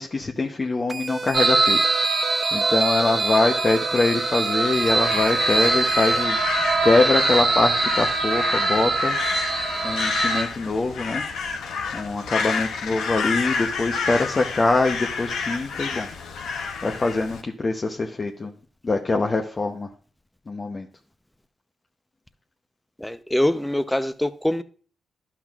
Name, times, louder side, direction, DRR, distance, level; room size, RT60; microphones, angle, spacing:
voice 1, 0.0-1.9 2.5-6.4 6.8-9.2 9.8-11.2 11.9-16.1 16.8-18.5 18.8-19.9 20.5-20.9, left 3 dB, 40° left, 0.8 m, -23 dB
sound 1, 0.9-6.2, right 4 dB, 45° right, 0.5 m, -33 dB
sound 2, 1.3-10.4, right 3 dB, 60° right, 1.3 m, -23 dB
Crow, 4.7-17.4, left 5 dB, 80° left, 0.9 m, -29 dB
voice 2, 23.0-24.6, left 1 dB, 10° left, 0.7 m, -24 dB
12.0 x 5.8 x 2.4 m
hypercardioid pair, 40°, 0 cm